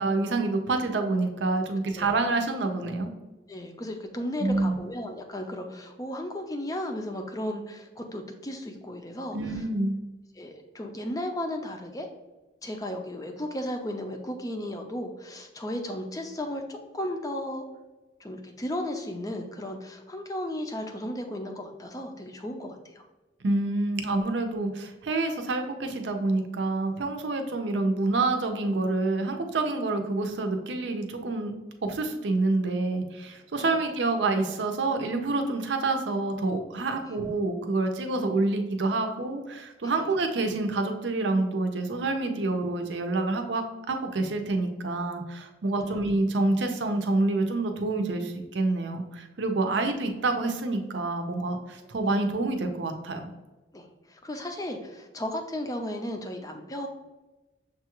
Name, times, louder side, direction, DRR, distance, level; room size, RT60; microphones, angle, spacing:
voice 1, 0.0-3.1 4.4-4.8 9.3-10.0 23.4-31.5 31.8-53.3, right 2 dB, 75° right, 5 dB, 0.6 m, -27 dB
voice 2, 3.5-9.4 10.4-12.1 12.6-17.6 18.2-23.0 33.6-33.7 39.8-40.1 49.7-49.8 53.7-56.9, left 1 dB, 20° left, 4 dB, 0.5 m, -35 dB
6.5 x 2.4 x 2.9 m, 1.1 s
head